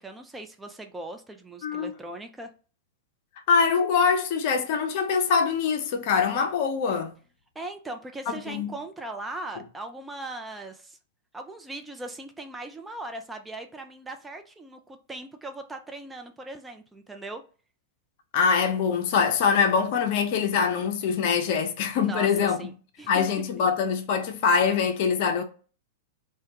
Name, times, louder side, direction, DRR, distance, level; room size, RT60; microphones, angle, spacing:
voice 1, 0.0-2.5 7.6-11.0 11.3-17.4 22.0-22.7 23.0-23.4, right 2 dB, 10° right, 0.3 m, -39 dB
voice 2, 3.5-7.1 8.3-8.7 18.3-22.6 23.1-25.4, left 6 dB, 55° left, 0.5 m, -24 dB
2.2 x 2.2 x 2.7 m
figure-of-eight pair, 100°, 0 cm